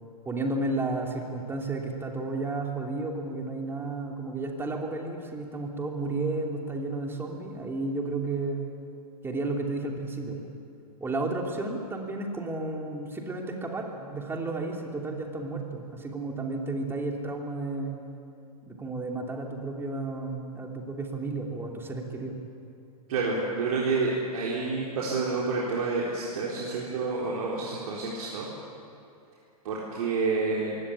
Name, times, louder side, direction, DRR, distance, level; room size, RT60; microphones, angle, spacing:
voice 1, 0.2-8.7 9.2-10.5 11.0-18.0 18.7-22.4, right 2 dB, 10° right, 1 dB, 3.1 m, -32 dB
voice 2, 23.1-28.5 29.6-30.8, right 4 dB, 65° right, -4 dB, 4.0 m, -29 dB
22.5 x 17.5 x 8.5 m, 2.7 s
hypercardioid pair, 125°, 20 cm